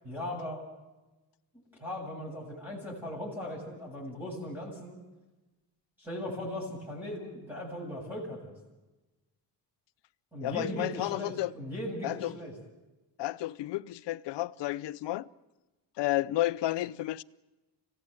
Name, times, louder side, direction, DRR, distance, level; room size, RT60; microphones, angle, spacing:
voice 1, 0.0-0.7 1.8-5.0 6.0-8.5 10.3-12.5, left 1 dB, 5° right, 7.6 m, -38 dB
voice 2, 10.4-11.5 12.0-12.3 13.2-15.3 16.0-17.2, left 16 dB, 80° left, 0.8 m, -31 dB
26.0 x 16.5 x 8.1 m
cardioid pair, 125°, 42 cm